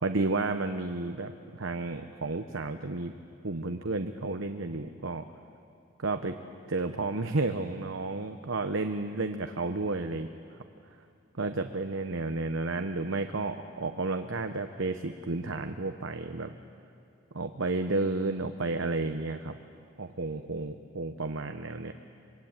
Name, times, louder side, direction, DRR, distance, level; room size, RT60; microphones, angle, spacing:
voice 1, 0.0-3.1 3.4-5.2 6.0-6.3 6.7-10.3 11.4-16.5 17.3-19.6 20.0-21.9, right 3 dB, 80° right, 7 dB, 1.0 m, -32 dB
25.5 x 22.0 x 9.0 m, 2.5 s
head